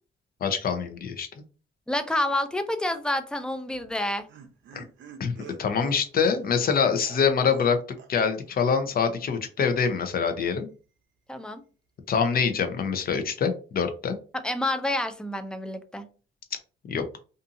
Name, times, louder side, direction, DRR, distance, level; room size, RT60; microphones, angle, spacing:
voice 1, 0.4-1.3 4.7-4.9 5.2-5.3 5.6-10.7 12.1-14.2 16.8-17.0, left 6 dB, 50° left, 0.6 m, -25 dB
voice 2, 1.9-4.3 11.3-11.6 14.3-16.1, left 1 dB, 5° left, 0.4 m, -28 dB
Laughter, 3.7-7.7 8.0-8.1 8.4-8.5, right 6 dB, 70° right, 0.7 m, -47 dB
2.6 x 2.5 x 2.6 m
cardioid pair, 90°, 20 cm